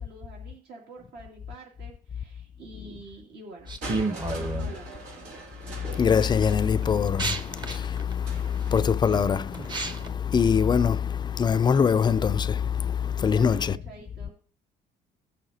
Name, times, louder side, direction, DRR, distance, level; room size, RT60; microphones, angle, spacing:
voice 1, 0.0-5.0 13.2-14.3, right 2 dB, 70° right, 2.5 m, -47 dB
sound 1, 3.7-4.7 5.5-5.9 6.4-10.1, right 3 dB, 25° right, 0.9 m, -32 dB
Crushing, 3.8-9.7 10.7-10.8, right 3 dB, 90° right, 2.6 m, -44 dB
voice 2, 5.8-13.8, left 7 dB, 25° left, 0.4 m, -24 dB
18.0 x 6.6 x 2.8 m
cardioid pair, 110°, 17 cm